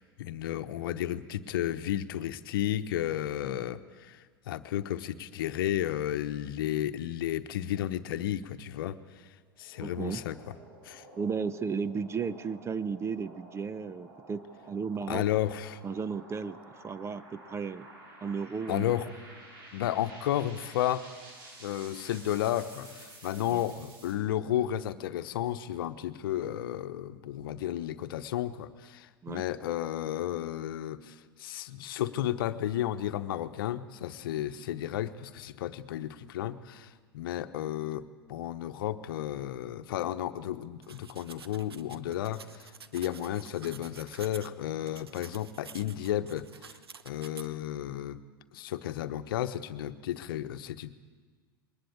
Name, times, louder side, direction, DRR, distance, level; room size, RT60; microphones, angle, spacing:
voice 1, 0.0-9.0 9.6-10.4 10.8-11.0 15.1-15.8 18.7-19.0 19.7-21.1 21.6-46.7 47.0-48.2 48.5-50.9, left 12 dB, 65° left, 11 dB, 1.0 m, -33 dB
sound 1, 9.5-24.2, right 2 dB, 65° right, 6.3 m, -51 dB
voice 2, 9.8-10.2 11.2-15.2 15.8-17.9 18.2-18.9 23.5-23.6 29.2-29.4, right 5 dB, 20° right, 16 dB, 0.8 m, -34 dB
sound 2, 40.8-44.5 44.9-47.5, right 6 dB, 85° right, 0.9 m, -49 dB
21.5 x 19.5 x 8.6 m, 1.5 s
hypercardioid pair, 90°, 13 cm